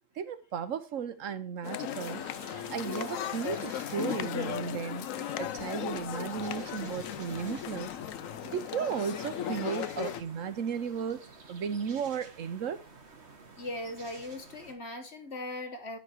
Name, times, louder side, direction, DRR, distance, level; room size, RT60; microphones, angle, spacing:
voice 1, 0.2-2.2 2.7-5.1 5.4-7.9 8.5-11.2 11.5-12.8, right 7 dB, 75° right, 1.3 m, -35 dB
sound 1, 1.6-10.2, left 11 dB, 85° left, 1.0 m, -36 dB
sound 2, 1.9-14.7, right 3 dB, 55° right, 1.8 m, -50 dB
voice 2, 13.6-16.0, left 1 dB, 55° left, 1.7 m, -39 dB
9.9 x 5.9 x 4.6 m
omnidirectional pair, 1.3 m